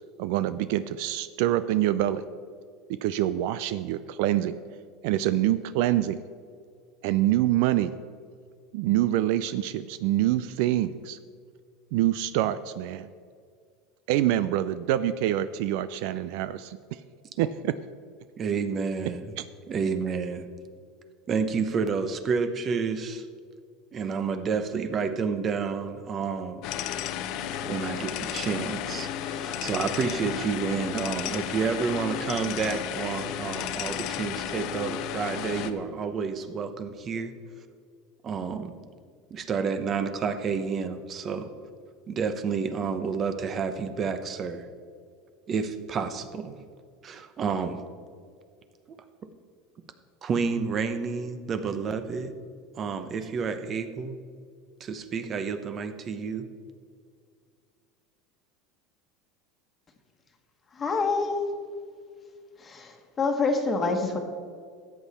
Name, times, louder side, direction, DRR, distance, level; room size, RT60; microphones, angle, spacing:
voice 1, 0.2-2.3 3.0-4.6 5.0-6.2 7.0-7.9 8.7-11.2 11.9-13.1 14.1-16.8 17.4-17.7 19.4-19.5, right 13 dB, 70° right, 14 dB, 0.4 m, -25 dB
voice 2, 18.4-19.3 19.7-20.5 21.3-23.2 23.9-26.6 27.6-37.3 38.2-38.7 39.3-41.5 42.1-44.7 45.5-46.6 47.0-47.8 50.2-52.3 52.8-54.2 54.8-56.5, right 5 dB, 35° right, 10 dB, 0.9 m, -30 dB
sound 1, 26.6-35.7, left 10 dB, 55° left, 0.7 m, -33 dB
voice 3, 60.7-61.4 62.6-64.2, left 4 dB, 25° left, 4 dB, 1.4 m, -26 dB
13.5 x 8.2 x 4.2 m, 2.1 s
supercardioid pair, 125°, 0 cm